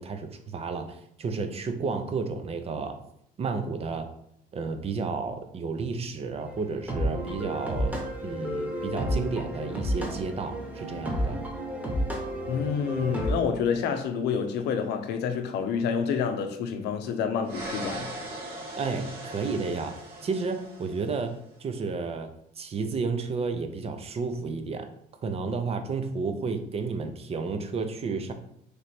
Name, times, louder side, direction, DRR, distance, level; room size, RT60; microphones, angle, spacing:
voice 1, 0.0-3.0 3.4-4.1 4.5-11.4 18.8-21.3 21.6-22.3 22.6-24.9 25.2-28.3, right 4 dB, 35° right, 0.6 m, -32 dB
sound 1, 6.4-13.3, equal, 10° right, 1.0 m, -31 dB
voice 2, 12.5-18.1, left 6 dB, 80° left, 0.6 m, -28 dB
sound 2, 17.4-21.3, right 1 dB, 60° right, 1.3 m, -39 dB
3.3 x 3.1 x 4.2 m
cardioid pair, 110°, 17 cm